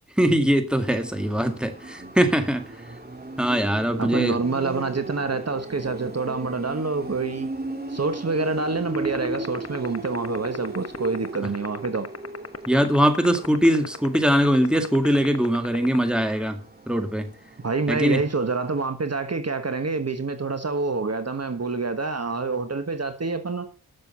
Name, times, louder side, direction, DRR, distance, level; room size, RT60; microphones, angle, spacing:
voice 1, 0.2-2.6 3.4-4.4 12.7-17.3 17.9-18.2, equal, ahead, 2.1 m, -21 dB
sound 1, 0.8-18.8, right 2 dB, 25° right, 3.0 m, -37 dB
voice 2, 4.0-7.5 7.9-12.1 17.6-23.7, right 4 dB, 45° right, 1.3 m, -27 dB
sound 2, 8.9-16.5, left 5 dB, 40° left, 1.2 m, -34 dB
13.0 x 6.9 x 5.6 m
wide cardioid pair, 70°, 37 cm